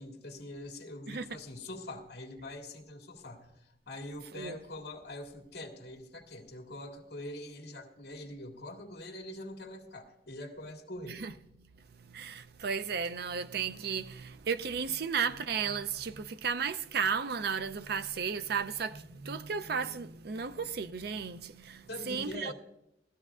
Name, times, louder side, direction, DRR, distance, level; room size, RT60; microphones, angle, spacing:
voice 1, 0.0-11.2 21.9-22.5, left 1 dB, 65° left, 1.7 m, -44 dB
voice 2, 1.1-1.4 4.3-4.6 11.1-11.3 11.6-22.5, right 6 dB, 60° right, 0.5 m, -34 dB
18.5 x 13.5 x 2.4 m
head